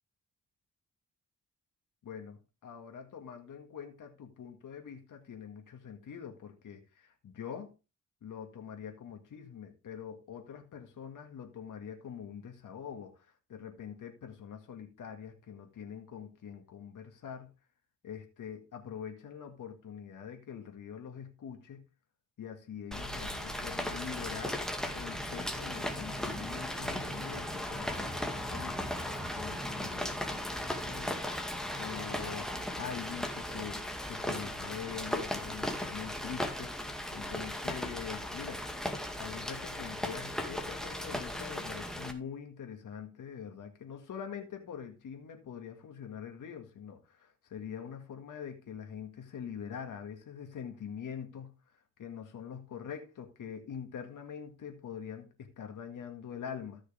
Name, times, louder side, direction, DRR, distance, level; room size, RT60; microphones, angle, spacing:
voice 1, 2.0-7.7 8.2-17.5 18.0-21.8 22.4-24.6 24.9-38.6 39.2-56.8, left 7 dB, 85° left, 1.9 m, -44 dB
Rain, 22.9-42.1, left 1 dB, ahead, 2.1 m, -37 dB
14.5 x 6.3 x 3.4 m
cardioid pair, 85°, 31 cm